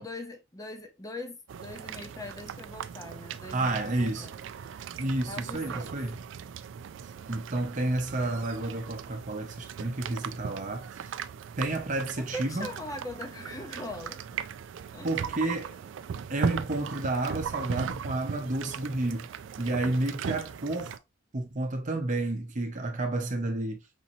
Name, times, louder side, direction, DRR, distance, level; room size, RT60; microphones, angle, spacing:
voice 1, 0.0-4.3 5.3-6.0 12.2-14.2 14.9-15.1, left 1 dB, 15° left, 0.7 m, -41 dB
sound 1, 1.5-21.0, right 7 dB, 65° right, 0.3 m, -38 dB
voice 2, 3.5-4.3 5.0-6.2 7.0-11.2 11.6-12.7 15.0-15.8 16.3-19.3 19.6-21.0 21.3-23.8, right 2 dB, 40° right, 0.7 m, -31 dB
5.2 x 2.8 x 2.7 m
head